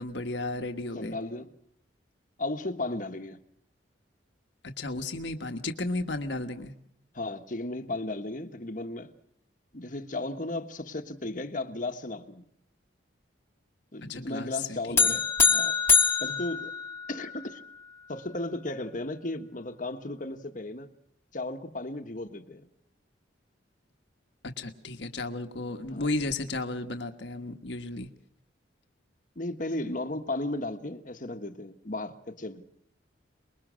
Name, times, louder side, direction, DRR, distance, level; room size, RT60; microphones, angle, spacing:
voice 1, 0.0-1.2 4.6-6.7 14.1-14.8 15.0-15.2 24.4-28.1, left 2 dB, 65° left, 1.4 m, -34 dB
voice 2, 0.9-1.5 2.4-3.4 7.1-9.1 9.7-12.4 13.9-15.2 15.5-15.8 16.2-16.7 17.1-17.6 18.1-20.9 21.3-22.7 25.9-26.0 29.3-32.6, left 2 dB, 45° left, 1.3 m, -35 dB
sound 1, 15.0-17.4, left 5 dB, 15° left, 1.5 m, -24 dB
24.5 x 21.5 x 6.3 m
head